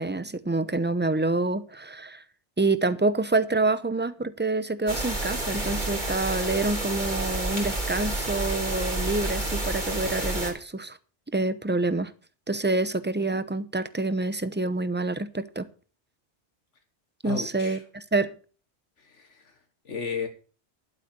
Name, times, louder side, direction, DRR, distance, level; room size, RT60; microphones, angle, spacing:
voice 1, 0.0-2.2 2.6-11.0 11.3-12.1 12.5-15.7 17.2-18.3, right 2 dB, 10° right, 0.6 m, -27 dB
sound 1, 4.9-10.5, right 2 dB, 40° right, 4.0 m, -29 dB
voice 2, 17.2-17.8 19.0-19.6 19.9-20.3, left 6 dB, 85° left, 1.8 m, -34 dB
11.5 x 8.3 x 6.7 m
omnidirectional pair, 1.2 m